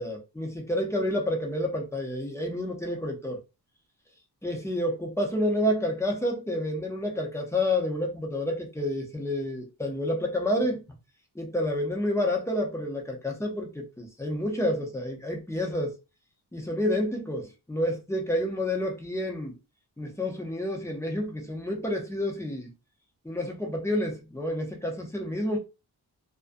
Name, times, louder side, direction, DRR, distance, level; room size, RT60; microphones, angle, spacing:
voice 1, 0.0-3.4 4.4-10.8 11.4-15.9 16.5-19.6 20.0-22.7 23.2-25.6, left 1 dB, 5° left, 0.5 m, -29 dB
2.4 x 2.1 x 2.4 m
wide cardioid pair, 165°, 39 cm